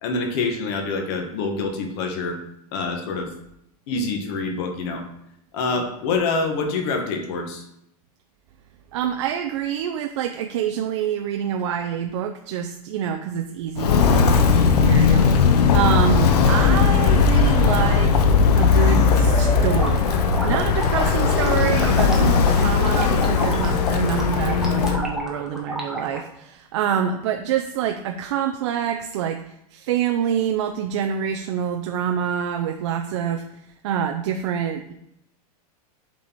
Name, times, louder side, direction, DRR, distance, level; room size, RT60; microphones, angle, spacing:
voice 1, 0.0-2.4 2.7-3.3 3.9-5.1 5.5-7.7, left 3 dB, 40° left, 4 dB, 1.4 m, -26 dB
voice 2, 8.9-18.3 18.6-34.9, right 8 dB, 50° right, 5 dB, 0.5 m, -26 dB
Walk footsteps, 13.8-25.0, left 5 dB, 85° left, 0.8 m, -18 dB
sound 1, 19.2-26.2, right 1 dB, ahead, 0.8 m, -32 dB
7.3 x 4.3 x 4.6 m, 0.77 s
supercardioid pair, 170°, 20 cm